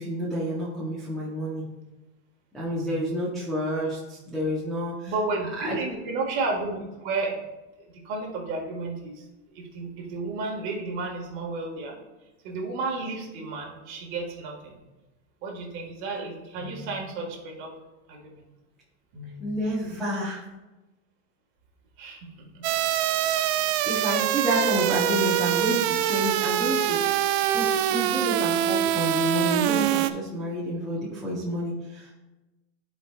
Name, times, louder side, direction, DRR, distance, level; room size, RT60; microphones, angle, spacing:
voice 1, 0.0-1.7 2.5-5.1 5.6-6.0 19.4-20.4 23.8-27.0 27.5-32.1, equal, ahead, -9 dB, 0.7 m, -29 dB
voice 2, 5.1-7.4 7.9-9.2 9.5-12.0 12.4-14.7 15.4-17.7 18.1-18.4 19.1-19.5 22.0-22.7, right 3 dB, 35° right, 0 dB, 1.4 m, -32 dB
sound 1, 22.6-30.1, right 11 dB, 65° right, 0.5 m, -24 dB
13.5 x 4.6 x 2.2 m, 1.1 s
supercardioid pair, 175°, 36 cm